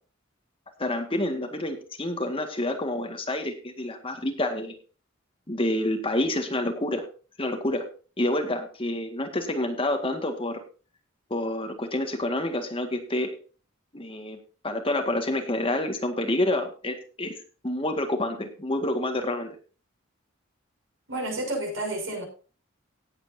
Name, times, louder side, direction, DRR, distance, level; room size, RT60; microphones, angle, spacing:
voice 1, 0.8-4.8 5.5-7.1 7.4-7.9 8.2-10.6 11.3-13.3 13.9-14.4 14.6-17.4 17.6-19.6, left 1 dB, 25° left, 5 dB, 1.8 m, -28 dB
voice 2, 21.1-22.2, right 1 dB, 70° right, 1 dB, 6.5 m, -30 dB
18.0 x 8.2 x 2.7 m, 0.37 s
head